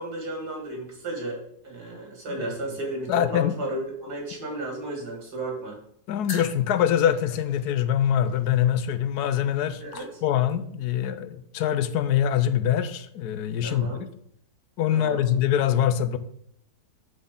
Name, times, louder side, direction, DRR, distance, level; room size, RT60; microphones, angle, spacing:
voice 1, 0.0-5.8 9.8-10.2 13.6-14.1 14.9-15.2, right 2 dB, 80° right, 1 dB, 2.3 m, -33 dB
voice 2, 3.1-3.5 6.1-9.8 10.2-14.0 14.8-16.2, left 10 dB, 90° left, 12 dB, 1.2 m, -24 dB
sound 1, 6.2-10.7, left 4 dB, 70° left, 1.5 m, -44 dB
11.0 x 4.3 x 3.6 m, 0.70 s
omnidirectional pair, 1.6 m